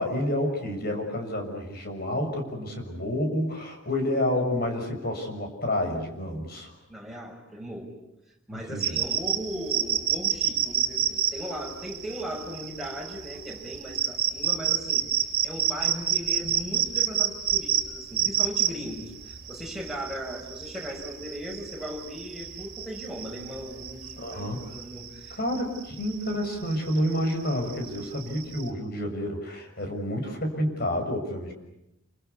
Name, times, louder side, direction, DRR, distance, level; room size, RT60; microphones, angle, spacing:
voice 1, 0.0-6.7 8.5-9.0 24.2-24.6 25.4-31.5, left 1 dB, 50° left, 4 dB, 6.5 m, -29 dB
voice 2, 6.9-8.0 8.5-15.1 15.4-25.4, equal, ahead, -1 dB, 6.0 m, -38 dB
sound 1, 8.8-28.7, right 9 dB, 45° right, 3.2 m, -29 dB
28.0 x 25.5 x 8.3 m, 0.85 s
head